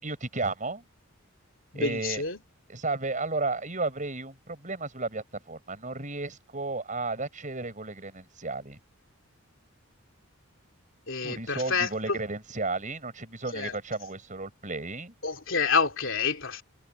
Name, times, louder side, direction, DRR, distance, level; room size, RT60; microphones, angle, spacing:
voice 1, 0.0-0.8 1.7-2.2 2.7-8.8 11.2-15.1, right 3 dB, 35° right, 7.6 m, -33 dB
voice 2, 1.7-2.4 11.1-12.2 13.5-13.8 15.2-16.6, left 5 dB, 60° left, 3.3 m, -28 dB
head